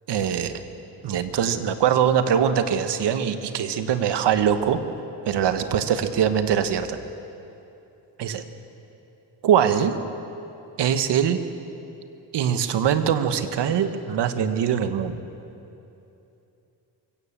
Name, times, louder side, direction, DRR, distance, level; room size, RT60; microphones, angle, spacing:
voice 1, 0.1-0.5 1.0-4.8 5.3-7.0 8.2-8.4 9.4-9.9 10.8-11.4 12.3-15.1, right 8 dB, 70° right, 9 dB, 1.5 m, -22 dB
24.0 x 16.5 x 7.5 m, 2.8 s
cardioid pair, 75°, 42 cm